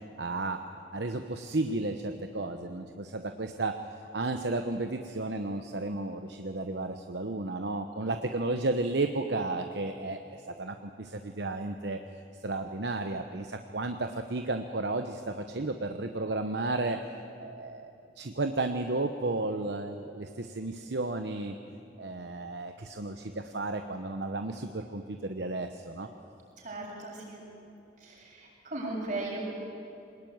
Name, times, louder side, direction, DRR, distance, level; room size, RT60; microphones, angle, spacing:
voice 1, 0.2-3.7 4.1-12.0 12.4-17.0 17.4-21.6 22.0-26.1, right 2 dB, 70° right, 6 dB, 1.0 m, -33 dB
voice 2, 26.6-27.4 28.0-29.4, right 2 dB, 50° right, -3 dB, 7.6 m, -37 dB
23.0 x 19.5 x 9.4 m, 2.7 s
head